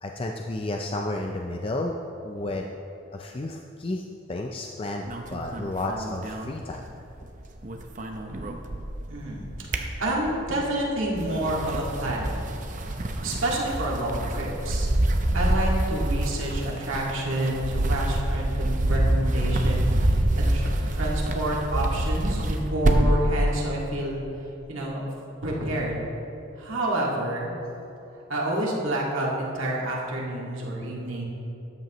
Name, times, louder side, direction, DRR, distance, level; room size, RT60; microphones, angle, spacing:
voice 1, 0.0-2.0 2.2-2.7 3.1-6.9, left 2 dB, 25° left, 2 dB, 0.4 m, -32 dB
sound 1, 5.1-7.2 7.5-9.1 9.5-10.5 11.0-23.3, right 1 dB, 40° right, 0.7 m, -26 dB
voice 2, 9.1-9.5 10.0-12.4 13.2-15.1 15.3-24.2 24.7-25.0 25.4-26.0 26.6-27.5 28.3-31.2, right 1 dB, 80° right, -3 dB, 2.0 m, -29 dB
13.0 x 9.4 x 3.0 m, 2.9 s
head